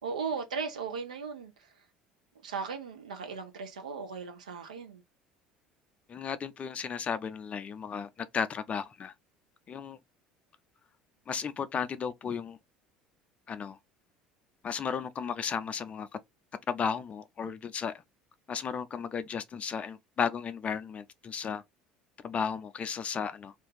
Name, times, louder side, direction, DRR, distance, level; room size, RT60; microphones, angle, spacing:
voice 1, 0.0-1.5 2.4-5.0, right 5 dB, 80° right, 0.7 m, -37 dB
voice 2, 6.1-9.1 9.7-10.0 11.3-12.6 13.5-13.8 14.6-16.1 16.7-17.9 18.5-21.6 22.2-23.5, left 6 dB, 35° left, 0.5 m, -34 dB
2.6 x 2.4 x 3.8 m
figure-of-eight pair, 65°, 4 cm